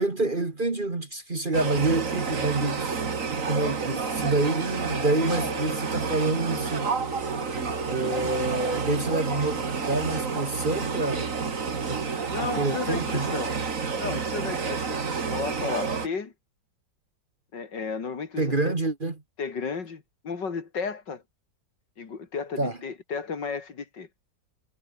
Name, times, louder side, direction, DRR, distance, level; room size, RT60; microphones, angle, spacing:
voice 1, 0.0-2.9 3.3-6.9 7.9-11.3 11.9-12.1 12.6-13.4 18.4-19.2 22.6-22.8, right 2 dB, 25° right, 1.9 m, -27 dB
sound 1, 1.5-16.1, right 5 dB, 45° right, 2.3 m, -30 dB
sound 2, 3.8-5.9 6.6-8.6 9.3-9.5, left 4 dB, 50° left, 3.4 m, -42 dB
voice 2, 12.3-13.5 13.9-16.3 17.5-18.7 19.4-21.2 22.0-24.1, left 5 dB, 70° left, 3.1 m, -33 dB
omnidirectional pair, 2.0 m